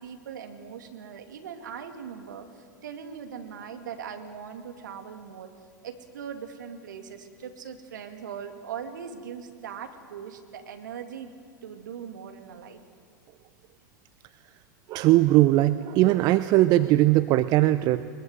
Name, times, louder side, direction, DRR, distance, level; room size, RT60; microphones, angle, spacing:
voice 1, 0.0-5.5 5.8-11.3 11.6-12.8, right 7 dB, 70° right, 6 dB, 2.3 m, -40 dB
voice 2, 14.9-18.1, right 16 dB, 40° right, 14 dB, 0.6 m, -20 dB
22.0 x 21.0 x 8.0 m, 2.1 s
figure-of-eight pair, 90°, 10 cm